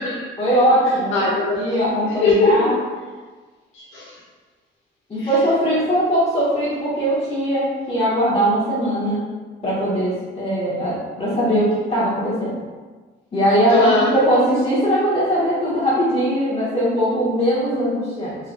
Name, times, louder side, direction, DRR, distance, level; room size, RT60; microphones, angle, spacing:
voice 1, 0.4-1.1 1.6-2.7 5.1-9.2 9.6-12.6 13.3-18.4, equal, 30° left, -10 dB, 1.3 m, -20 dB
voice 2, 1.1-1.6 2.1-2.6 3.7-4.1 5.2-5.3 13.7-14.1, left 3 dB, 90° left, -6 dB, 1.2 m, -20 dB
3.8 x 3.2 x 2.2 m, 1.4 s
cardioid pair, 90°, 20 cm